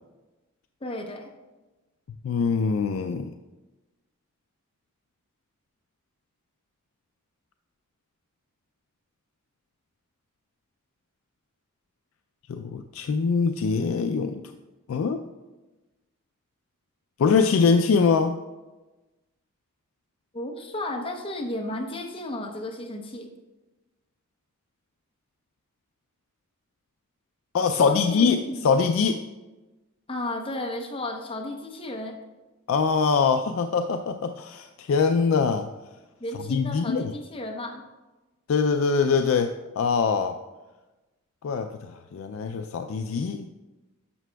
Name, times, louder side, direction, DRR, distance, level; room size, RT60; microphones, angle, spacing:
voice 1, 0.8-1.3 20.3-23.3 27.8-28.7 30.1-32.2 36.2-37.8, left 1 dB, 25° left, 2 dB, 0.8 m, -33 dB
voice 2, 2.2-3.3 12.5-14.4 14.9-15.2 17.2-18.4 27.5-29.2 32.7-35.7 36.5-37.1 38.5-40.4 41.4-43.6, left 5 dB, 65° left, 7 dB, 0.3 m, -23 dB
11.0 x 6.7 x 2.3 m, 1.1 s
head